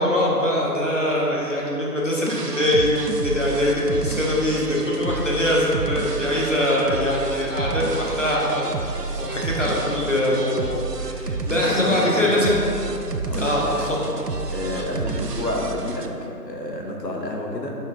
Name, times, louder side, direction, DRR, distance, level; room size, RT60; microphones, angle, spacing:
voice 1, 0.0-12.6 13.3-14.1 14.7-14.9, left 1 dB, 50° left, -4 dB, 1.1 m, -23 dB
sound 1, 2.3-16.1, right 3 dB, 70° right, 0.6 m, -30 dB
voice 2, 11.6-12.5 13.2-13.9 14.5-16.1 16.4-17.7, left 1 dB, 80° left, 0 dB, 1.1 m, -29 dB
5.5 x 4.6 x 3.7 m, 2.8 s
figure-of-eight pair, 180°, 49 cm